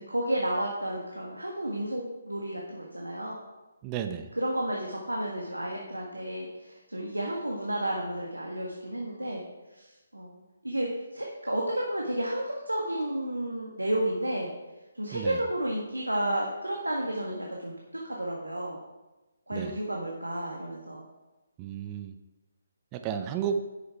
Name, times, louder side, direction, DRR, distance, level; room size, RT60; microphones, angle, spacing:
voice 1, 0.1-3.4 4.3-9.4 9.7-14.5 14.9-17.7 18.0-18.8 19.5-21.0, right 1 dB, 90° right, -1 dB, 1.7 m, -32 dB
voice 2, 3.8-4.3 15.1-15.4 19.5-19.7 21.6-22.1 22.9-23.6, right 8 dB, 20° right, 7 dB, 0.7 m, -32 dB
11.0 x 6.6 x 4.7 m, 1.1 s
figure-of-eight pair, 145°, 0 cm